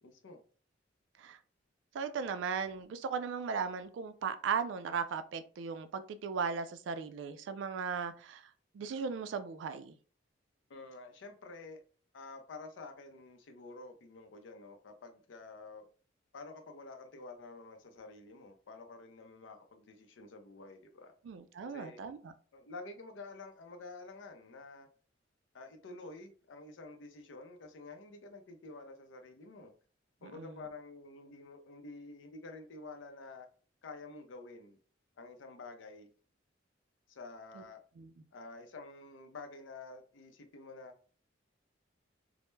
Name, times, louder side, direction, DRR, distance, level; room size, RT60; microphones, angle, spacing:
voice 1, 0.0-0.4 10.7-11.8 12.1-15.9 16.3-21.1 21.6-22.0 22.5-24.9 25.5-29.7 30.2-33.5 33.8-34.8 35.2-36.1 37.1-37.8 38.3-40.9, left 3 dB, 90° left, 0.5 m, -49 dB
voice 2, 1.9-8.4 8.7-10.0 21.2-22.3 30.2-30.6 37.6-37.7 38.0-38.1, right 6 dB, 75° right, 0.3 m, -37 dB
2.1 x 2.0 x 3.1 m
head